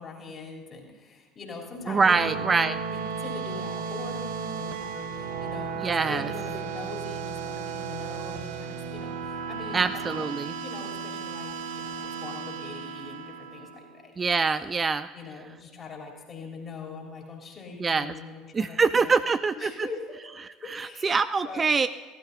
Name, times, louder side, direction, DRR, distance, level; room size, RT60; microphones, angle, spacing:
voice 1, 0.0-10.3 10.6-14.7 15.1-19.2 19.6-20.2 20.6-21.2 21.4-21.7, left 4 dB, 30° left, 0 dB, 3.2 m, -42 dB
sound 1, 1.7-14.0, right 6 dB, 65° right, 0.8 m, -35 dB
voice 2, 1.9-2.8 5.8-6.3 9.7-10.5 14.2-15.1 17.8-18.1 18.5-19.9 20.7-21.9, right 4 dB, 25° right, 13 dB, 0.4 m, -24 dB
15.0 x 12.5 x 3.9 m, 1.4 s
figure-of-eight pair, 65°, 0 cm